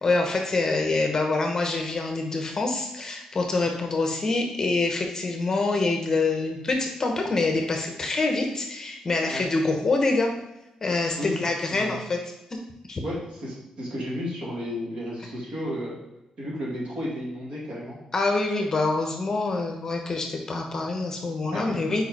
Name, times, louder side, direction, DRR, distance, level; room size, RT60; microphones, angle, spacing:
voice 1, 0.0-10.3 10.8-12.6 12.9-13.0 18.1-22.1, left 3 dB, 30° left, 2 dB, 0.8 m, -26 dB
voice 2, 13.0-16.0 16.4-18.0 21.5-21.8, equal, 55° right, -5 dB, 2.3 m, -33 dB
4.6 x 4.6 x 4.6 m, 0.93 s
wide cardioid pair, 155°, 2 cm